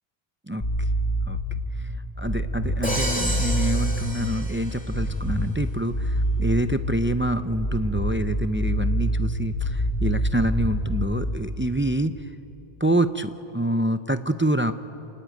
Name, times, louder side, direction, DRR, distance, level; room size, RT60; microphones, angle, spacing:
voice 1, 0.5-0.9 1.3-1.4 1.8-1.9 2.2-12.2 12.8-14.7, right 1 dB, 15° right, 10 dB, 0.4 m, -26 dB
sound 1, 0.6-1.6 2.2-4.2 4.9-5.7 5.9-6.9 7.6-11.2, equal, 40° left, 8.1 m, -26 dB
Crash cymbal, 2.8-5.0, equal, 5° left, 2.4 m, -31 dB
27.5 x 19.5 x 9.2 m, 2.9 s
omnidirectional pair, 1.2 m